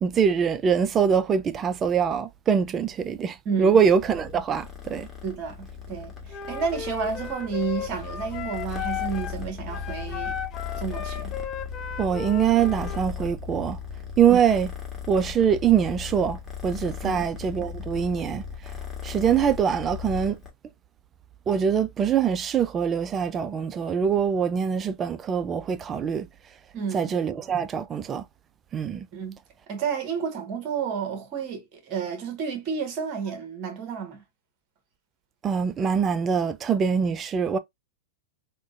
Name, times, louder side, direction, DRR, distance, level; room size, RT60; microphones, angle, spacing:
voice 1, 0.0-5.1 12.0-13.8 14.2-14.7 15.1-18.7 19.0-20.4 21.5-26.3 26.9-28.2 28.7-29.1 35.4-37.6, right 7 dB, 25° right, 0.4 m, -23 dB
voice 2, 3.5-3.8 5.2-10.4 10.8-11.3 14.3-14.4 17.0-17.2 26.7-27.1 29.1-29.4 29.7-34.2, right 6 dB, 40° right, 1.6 m, -31 dB
Purr, 3.9-20.5, left 7 dB, 10° left, 1.4 m, -37 dB
Wind instrument woodwind instrument, 6.3-9.4 9.7-13.1, left 8 dB, 30° left, 0.6 m, -35 dB
3.6 x 2.5 x 2.5 m
hypercardioid pair, 115°, 0 cm